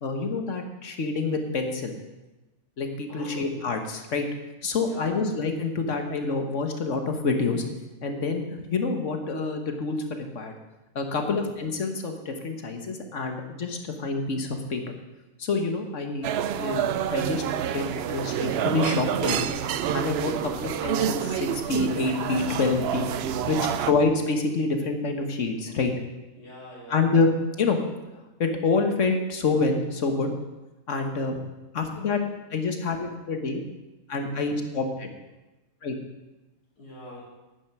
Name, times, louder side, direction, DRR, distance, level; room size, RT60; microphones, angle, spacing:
voice 1, 0.0-2.0 2.8-4.3 4.6-7.6 8.0-10.5 10.9-14.9 15.4-16.3 16.6-19.5 19.9-23.1 23.5-25.9 26.9-27.8 28.4-30.3 30.9-31.4 31.7-32.2 32.5-33.6 34.1-35.1 35.8-35.9, left 3 dB, 50° left, 5 dB, 1.6 m, -27 dB
voice 2, 4.8-5.2 11.1-11.4 23.6-23.9 26.3-27.1 36.8-37.2, left 1 dB, 75° left, -6 dB, 3.3 m, -44 dB
sound 1, 16.2-23.9, right 9 dB, 80° right, 0.5 m, -28 dB
9.9 x 9.8 x 6.0 m, 1.0 s
omnidirectional pair, 1.7 m